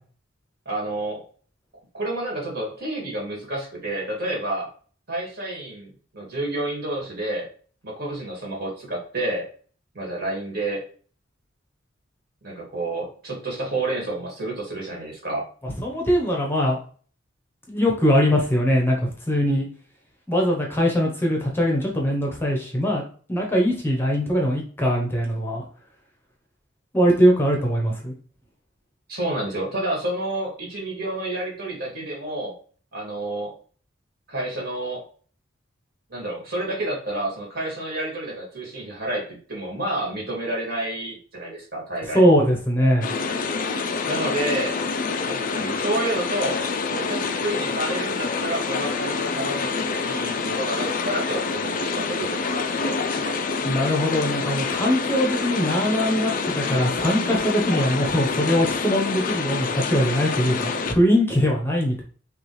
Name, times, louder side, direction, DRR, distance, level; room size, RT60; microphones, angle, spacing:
voice 1, 0.7-1.2 1.9-4.7 5.1-7.5 7.8-9.5 9.9-10.8 12.4-15.5 29.1-32.5 32.9-33.5 34.3-35.0 36.1-42.2 44.1-44.8 45.2-46.6 46.9-53.3, right 1 dB, 55° right, -2 dB, 2.1 m, -29 dB
voice 2, 15.6-16.8 17.7-19.7 20.3-23.0 23.3-25.6 26.9-28.1 42.1-43.1 53.6-62.0, equal, 10° left, 0 dB, 0.9 m, -21 dB
sound 1, 43.0-60.9, left 4 dB, 45° left, 0.4 m, -27 dB
6.0 x 2.4 x 3.2 m, 0.42 s
head